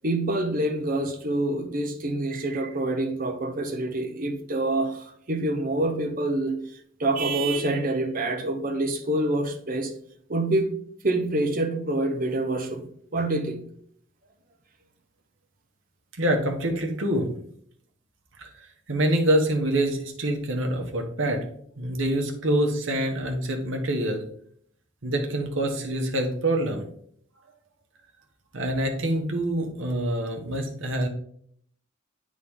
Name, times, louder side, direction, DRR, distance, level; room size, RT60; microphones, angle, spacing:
voice 1, 0.0-6.6 7.0-9.9 10.3-10.7 11.0-13.7, right 2 dB, 45° right, 0.8 m, -26 dB
voice 2, 16.2-17.3 18.4-18.5 18.9-21.4 21.8-24.2 25.0-26.9 28.5-31.1, right 1 dB, 65° right, 1.1 m, -25 dB
8.7 x 3.7 x 3.6 m
head